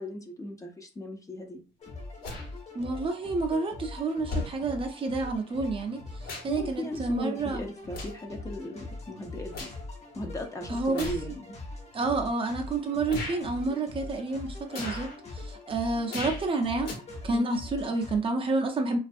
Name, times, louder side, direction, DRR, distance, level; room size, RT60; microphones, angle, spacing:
voice 1, 0.0-1.6 6.5-9.7 10.1-11.6 17.3-17.6, left 1 dB, 20° left, 0.5 m, -37 dB
sound 1, 1.8-18.2, left 2 dB, 40° left, 0.9 m, -42 dB
sound 2, 2.2-2.5 3.5-3.6 4.3-4.6 5.8-6.6 7.0-7.2 7.9-8.3 8.7-9.8 10.9-11.3 12.0-12.1 13.1-13.4 14.7-15.1 16.1-16.5 16.8-16.9, left 3 dB, 65° left, 1.1 m, -37 dB
voice 2, 2.7-7.6 10.7-11.1 11.9-16.9 17.2-19.0, right 3 dB, 30° right, 0.5 m, -29 dB
2.4 x 2.3 x 2.5 m
cardioid pair, 110°, 17 cm